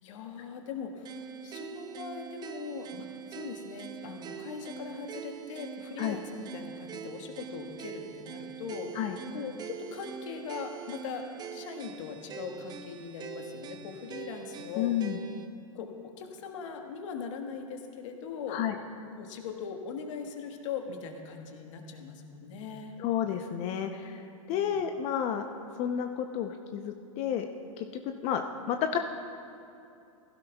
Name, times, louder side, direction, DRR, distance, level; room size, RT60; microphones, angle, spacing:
voice 1, 0.0-9.0 9.3-11.3 11.5-14.9 15.7-18.6 19.2-23.0 24.5-24.9, left 6 dB, 60° left, 3 dB, 1.5 m, -40 dB
sound 1, 1.0-15.5, right 7 dB, 25° right, 0.6 m, -43 dB
voice 2, 14.8-15.2 18.5-18.7 23.0-24.2 24.5-25.4 25.8-27.5 27.8-27.9 28.2-29.0, left 9 dB, 40° left, 6 dB, 0.7 m, -30 dB
16.0 x 15.5 x 2.3 m, 2.6 s
hypercardioid pair, 115°, 18 cm